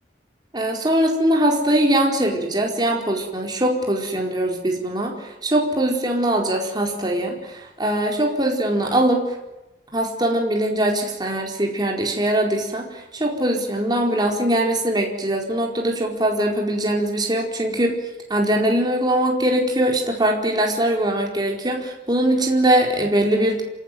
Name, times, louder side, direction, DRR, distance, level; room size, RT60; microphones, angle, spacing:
voice 1, 0.5-5.2 5.4-7.4 7.8-9.3 9.9-17.9 18.3-23.6, right 1 dB, 25° right, 0 dB, 4.6 m, -21 dB
28.0 x 18.0 x 9.4 m, 0.98 s
head